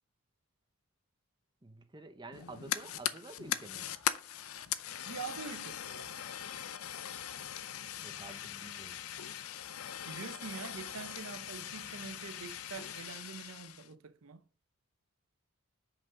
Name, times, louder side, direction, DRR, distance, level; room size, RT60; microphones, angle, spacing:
voice 1, 1.6-3.9 8.0-9.0, right 2 dB, 20° right, 0.7 m, -50 dB
Fire, 2.3-13.9, left 10 dB, 85° left, 0.6 m, -40 dB
voice 2, 5.0-6.3 10.1-14.4, right 5 dB, 75° right, 0.6 m, -45 dB
5.9 x 5.2 x 4.8 m
head